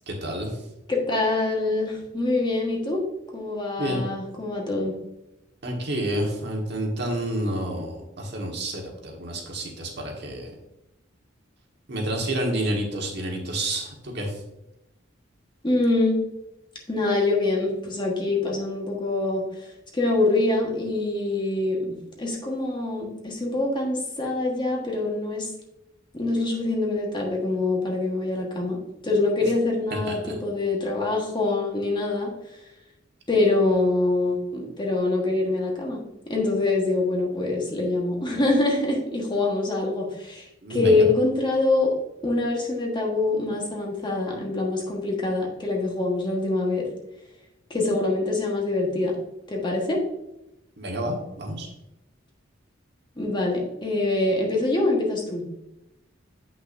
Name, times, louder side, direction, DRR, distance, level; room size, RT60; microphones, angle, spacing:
voice 1, 0.1-0.5 3.8-4.0 5.6-10.5 11.9-14.3 30.1-30.3 40.6-41.1 50.8-51.7, right 1 dB, 60° right, 0 dB, 1.4 m, -29 dB
voice 2, 0.9-3.0 3.3-5.0 15.6-16.2 16.9-19.4 19.9-25.5 26.1-28.8 29.0-32.3 33.3-36.0 36.3-41.9 42.2-46.9 47.7-49.1 49.5-50.0 53.2-55.4, left 2 dB, 25° left, -1 dB, 1.4 m, -24 dB
8.1 x 5.8 x 2.6 m, 0.91 s
head